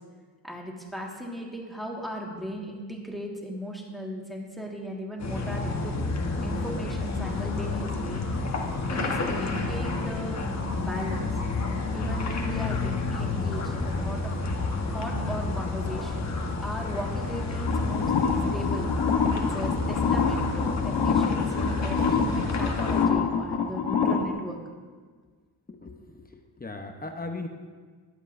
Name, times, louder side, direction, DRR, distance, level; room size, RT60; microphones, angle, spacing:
voice 1, 0.4-6.1 6.4-8.2 8.9-10.4 10.7-11.3 11.9-14.3 14.9-16.3 16.6-18.9 19.3-24.6, equal, ahead, -2 dB, 1.7 m, -37 dB
sound 1, 5.2-23.1, left 3 dB, 40° left, 1.1 m, -30 dB
sound 2, 17.7-24.3, left 6 dB, 70° left, 1.0 m, -26 dB
voice 2, 25.7-27.5, left 2 dB, 20° left, 5 dB, 0.8 m, -38 dB
22.0 x 8.1 x 2.6 m, 1.5 s
wide cardioid pair, 130°, 41 cm